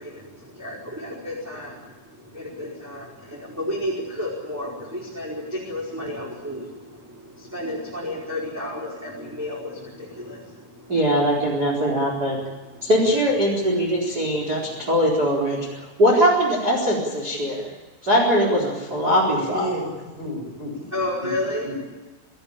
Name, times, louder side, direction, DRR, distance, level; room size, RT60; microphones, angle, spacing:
voice 1, 0.0-15.7 18.9-19.4 19.8-19.9 20.9-21.7, left 1 dB, 5° right, -3 dB, 3.9 m, -33 dB
voice 2, 10.9-12.4 12.8-17.7 18.0-19.7, equal, 20° right, 0 dB, 4.1 m, -21 dB
voice 3, 19.3-19.9 20.2-21.3 21.6-21.9, equal, 20° left, 0 dB, 6.7 m, -32 dB
26.5 x 15.5 x 8.7 m, 1.2 s
omnidirectional pair, 5.9 m